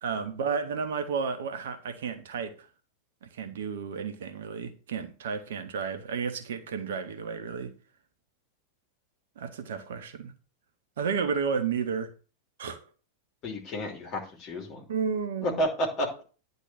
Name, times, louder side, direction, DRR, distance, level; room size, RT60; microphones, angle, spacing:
voice 1, 0.0-2.7 3.2-7.7 9.4-10.3 11.0-12.1 12.6-12.8 14.9-15.6, right 6 dB, 60° right, 1.2 m, -32 dB
voice 2, 13.4-14.8 15.4-16.2, equal, 35° left, 3.0 m, -31 dB
10.0 x 3.9 x 7.3 m
figure-of-eight pair, 90°, 0 cm